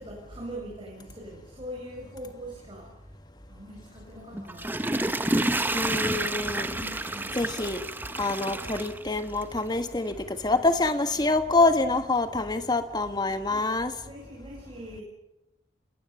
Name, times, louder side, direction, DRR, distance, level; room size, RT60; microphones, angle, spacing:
voice 1, 0.0-3.1 3.5-5.0 6.7-7.5 10.5-10.7 13.5-13.7 14.0-15.0, equal, 25° right, -2 dB, 6.6 m, -43 dB
Water / Toilet flush, 4.3-9.6 10.1-10.2, right 1 dB, 10° right, 0.9 m, -29 dB
voice 2, 5.7-6.7 7.3-7.8 8.2-13.9, left 2 dB, 20° left, 8 dB, 1.6 m, -26 dB
27.5 x 21.5 x 7.2 m, 0.88 s
head